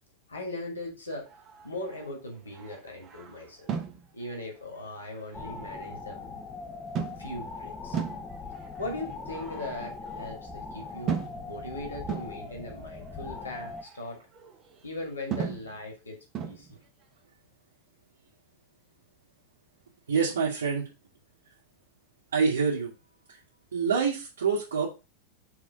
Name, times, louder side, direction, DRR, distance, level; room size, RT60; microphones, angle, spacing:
voice 1, 0.3-1.3 1.6-3.7 4.1-6.4 7.2-8.0 8.8-11.2 11.5-14.2 14.8-16.7, left 1 dB, 75° left, 1 dB, 2.8 m, -39 dB
sound 1, 1.1-6.3 6.9-7.5 7.9-10.4 11.1-11.6 12.1-15.0 15.3-15.8 16.3-16.7, right 7 dB, 30° right, 1.2 m, -38 dB
sound 2, 5.3-13.8, left 4 dB, 15° left, 1.0 m, -41 dB
voice 2, 20.1-20.9 22.3-22.9 23.7-24.9, right 5 dB, 65° right, -5 dB, 2.1 m, -26 dB
6.3 x 3.7 x 5.3 m, 0.28 s
figure-of-eight pair, 90°, 0 cm